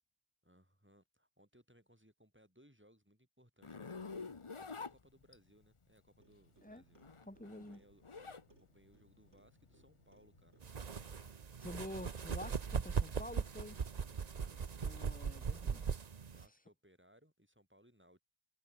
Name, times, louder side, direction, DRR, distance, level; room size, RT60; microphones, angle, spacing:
voice 1, 0.4-7.0 7.6-8.0 8.6-10.6 14.3-15.7 16.3-18.2, equal, 10° right, 7.6 m, -67 dB
Zipper (clothing), 3.6-5.6 6.8-8.5 8.9-11.3, left 4 dB, 30° left, 0.9 m, -48 dB
Clock, 6.2-15.3, right 2 dB, 70° right, 4.5 m, -69 dB
voice 2, 7.3-7.8 11.6-13.8 14.8-15.9, left 1 dB, 5° left, 3.2 m, -48 dB
sound 1, 10.6-16.4, right 6 dB, 40° right, 0.9 m, -39 dB
omnidirectional pair, 1.2 m